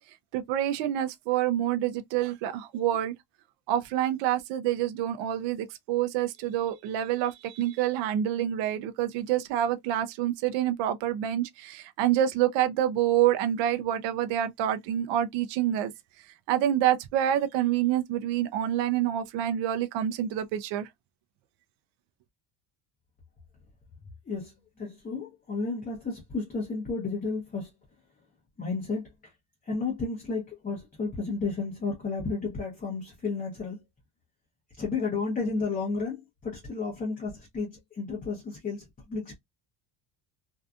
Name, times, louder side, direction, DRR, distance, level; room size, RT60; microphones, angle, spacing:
voice 1, 0.3-3.1 3.7-15.9 16.5-20.9, right 11 dB, 65° right, 0.5 m, -27 dB
voice 2, 24.3-27.7 28.6-29.1 29.6-33.8 34.8-39.4, left 4 dB, 20° left, 0.7 m, -32 dB
2.6 x 2.3 x 2.3 m
cardioid pair, 140°, 48 cm